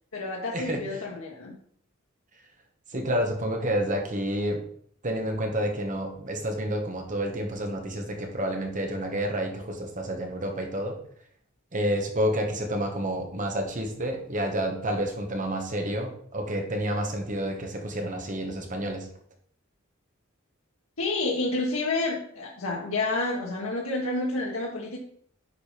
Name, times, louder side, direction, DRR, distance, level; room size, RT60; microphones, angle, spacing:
voice 1, 0.1-1.5 21.0-25.0, left 2 dB, 90° left, -2 dB, 1.5 m, -29 dB
voice 2, 2.9-4.6 5.0-11.0 11.7-19.1, equal, 40° right, 3 dB, 1.7 m, -29 dB
9.9 x 5.3 x 5.2 m, 0.62 s
head